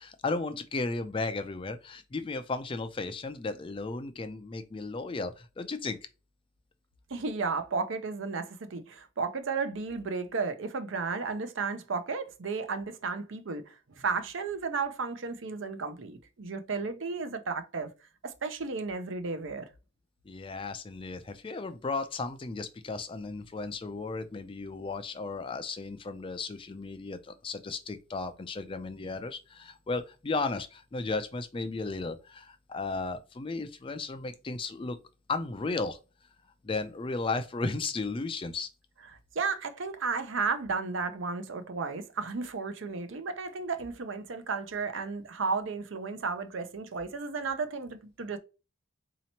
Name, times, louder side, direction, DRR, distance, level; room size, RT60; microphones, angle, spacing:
voice 1, 0.0-6.0 20.3-35.0 35.3-36.0 36.6-38.7, left 3 dB, 25° left, 0.4 m, -35 dB
voice 2, 7.1-17.9 18.2-19.7 39.3-48.4, right 4 dB, 65° right, 0.6 m, -33 dB
4.1 x 2.9 x 2.7 m
head